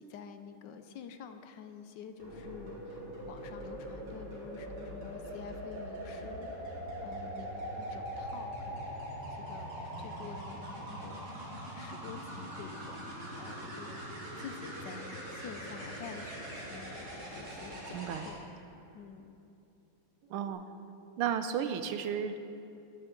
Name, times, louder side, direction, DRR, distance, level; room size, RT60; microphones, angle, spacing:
voice 1, 0.0-6.5 7.0-9.0 9.3-9.7 10.0-13.0 13.4-14.0 14.4-18.4 18.9-19.4, left 7 dB, 70° left, 8 dB, 1.1 m, -48 dB
sound 1, 2.2-18.3 20.2-20.5, equal, 70° right, 3.8 m, -42 dB
voice 2, 17.9-18.3 20.3-20.6 21.2-22.4, right 8 dB, 85° right, 9 dB, 1.6 m, -33 dB
21.5 x 8.8 x 3.8 m, 2.7 s
omnidirectional pair, 2.4 m